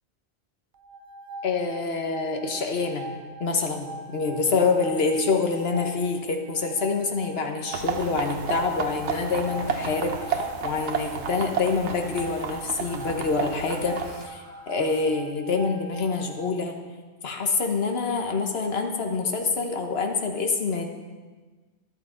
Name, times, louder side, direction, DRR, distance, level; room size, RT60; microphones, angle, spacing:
sound 1, 0.7-16.6, right 1 dB, 50° right, 0.9 m, -42 dB
voice 1, 1.4-3.1 3.4-16.7 17.2-20.9, left 4 dB, 60° left, 4 dB, 1.4 m, -26 dB
sound 2, 7.7-14.3, right 6 dB, 80° right, 1.1 m, -32 dB
sound 3, 8.9-15.0, left 1 dB, 65° right, 3.8 m, -45 dB
12.5 x 11.5 x 3.9 m, 1.3 s
omnidirectional pair, 1.2 m